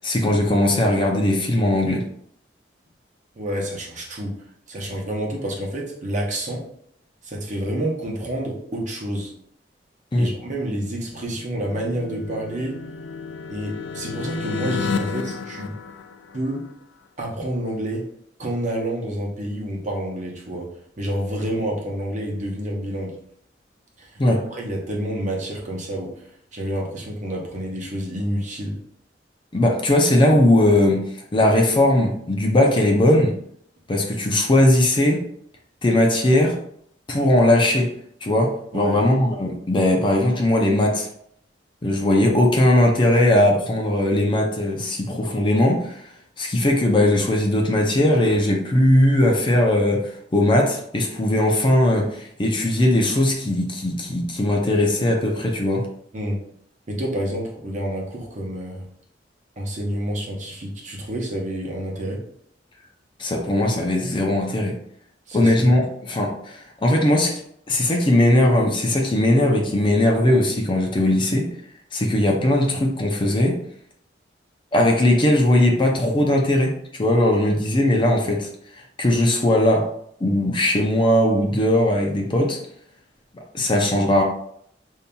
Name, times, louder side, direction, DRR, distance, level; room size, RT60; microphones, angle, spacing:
voice 1, 0.0-2.0 10.1-10.3 24.2-24.4 29.5-31.0 31.3-33.3 33.9-35.3 35.8-36.6 37.1-37.9 38.2-41.1 41.8-46.0 46.4-55.9 63.2-64.7 65.3-67.4 67.7-71.5 71.9-73.6 74.7-78.5 79.0-79.9 80.2-82.6 83.5-84.2, left 1 dB, 30° left, 1 dB, 0.5 m, -19 dB
voice 2, 3.4-6.6 7.2-9.3 10.2-12.8 13.5-15.8 16.3-16.6 17.2-18.1 18.4-20.7 21.0-23.2 24.0-26.3 26.5-28.8 38.7-39.1 56.1-56.4 56.9-58.9 59.6-62.2 65.3-65.5 77.4-77.5, right 1 dB, 45° right, -2 dB, 0.9 m, -28 dB
sound 1, 10.9-16.7, left 5 dB, 90° left, 0.4 m, -32 dB
5.3 x 2.7 x 2.3 m, 0.68 s
head